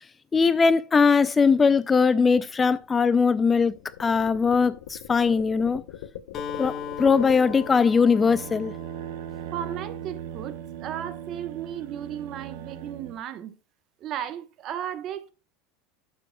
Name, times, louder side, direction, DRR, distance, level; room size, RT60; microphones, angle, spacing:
voice 1, 0.3-5.8 6.6-6.7 7.0-8.7, left 5 dB, 20° left, 0.4 m, -20 dB
sound 1, 2.5-8.1, left 12 dB, 90° left, 0.7 m, -41 dB
Acoustic guitar, 6.3-10.2, left 7 dB, 35° left, 1.3 m, -39 dB
sound 2, 7.9-13.2, right 10 dB, 75° right, 0.9 m, -38 dB
voice 2, 9.5-13.5 14.0-15.3, right 10 dB, 40° right, 1.0 m, -35 dB
11.5 x 7.0 x 2.2 m
supercardioid pair, 135°, 0 cm